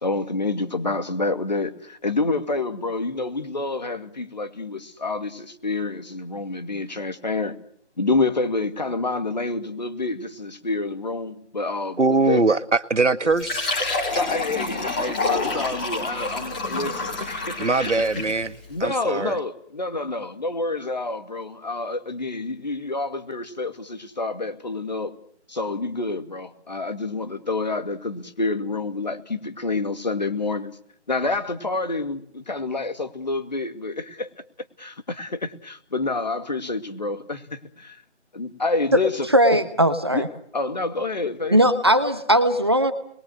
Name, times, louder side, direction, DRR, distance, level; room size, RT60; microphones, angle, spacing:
voice 1, 0.0-7.6 8.0-12.4 14.1-18.2 18.7-25.1 25.5-30.8 31.1-34.3 34.8-38.0 38.3-39.3 40.1-40.2 40.5-41.6, left 3 dB, 40° left, 2.4 m, -28 dB
voice 2, 12.0-13.7 17.6-18.5 18.8-19.4, right 3 dB, 85° right, 1.8 m, -21 dB
Fill (with liquid), 13.3-18.5, left 3 dB, 5° left, 2.9 m, -28 dB
voice 3, 39.3-40.3 41.5-42.9, equal, 20° right, 1.3 m, -18 dB
29.5 x 22.5 x 6.5 m
figure-of-eight pair, 175°, 34 cm